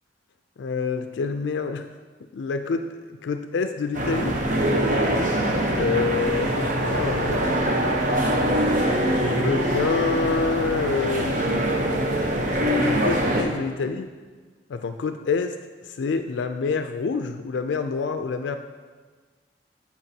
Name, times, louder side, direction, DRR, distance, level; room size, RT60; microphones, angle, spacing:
voice 1, 0.6-1.9 2.3-2.8 3.2-4.3 5.8-7.4 8.5-11.6 12.8-14.1 14.7-15.5 15.9-18.6, left 4 dB, 80° left, 7 dB, 0.4 m, -27 dB
sound 1, 3.9-13.4, right 1 dB, 45° right, 0.9 m, -23 dB
13.5 x 4.6 x 2.8 m, 1.4 s
head